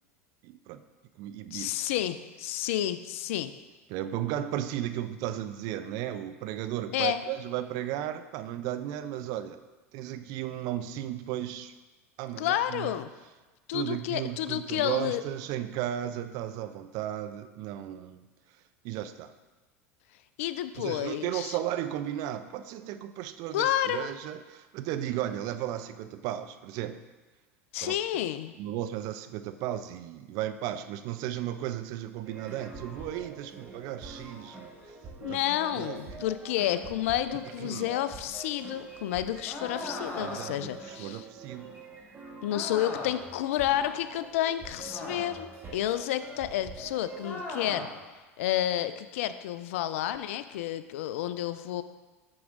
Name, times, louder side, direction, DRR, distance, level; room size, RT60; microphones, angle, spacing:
voice 1, 0.4-0.8 1.2-1.7 3.9-9.6 9.9-11.7 12.2-12.9 13.7-18.3 18.8-19.3 20.8-27.0 27.8-28.0 28.6-34.7 35.3-35.4 35.8-36.3 37.6-37.9 40.2-41.7, right 12 dB, 55° right, 11 dB, 0.4 m, -35 dB
voice 2, 1.5-3.5 6.9-7.2 12.4-13.1 13.7-15.2 20.4-21.6 23.5-24.1 27.7-28.5 35.2-41.2 42.4-47.9 48.4-51.8, left 12 dB, 65° left, 13 dB, 0.4 m, -30 dB
sound 1, 32.2-47.4, right 3 dB, 30° right, 1.8 m, -46 dB
sound 2, 39.5-40.7 42.5-43.3 44.9-45.6 47.2-48.0, left 2 dB, 25° left, 1.5 m, -39 dB
8.5 x 6.2 x 2.5 m, 1.2 s
hypercardioid pair, 80°, 8 cm